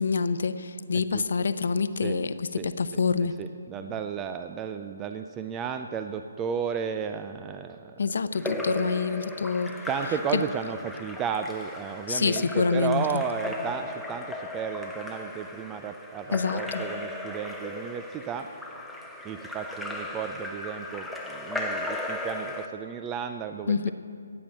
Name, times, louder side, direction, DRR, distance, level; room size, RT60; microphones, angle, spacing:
voice 1, 0.0-3.4 8.0-9.7 10.3-10.4 12.1-13.2 16.3-16.8 23.7-23.9, left 5 dB, 65° left, 12 dB, 0.7 m, -26 dB
voice 2, 3.4-7.9 8.4-8.5 9.9-18.5 19.2-23.9, right 7 dB, 15° right, 7 dB, 0.4 m, -33 dB
Splash splatter / Drip / Trickle dribble, 8.3-22.7, left 1 dB, ahead, 0.8 m, -36 dB
14.0 x 9.0 x 7.3 m, 2.3 s
hypercardioid pair, 155°, 0 cm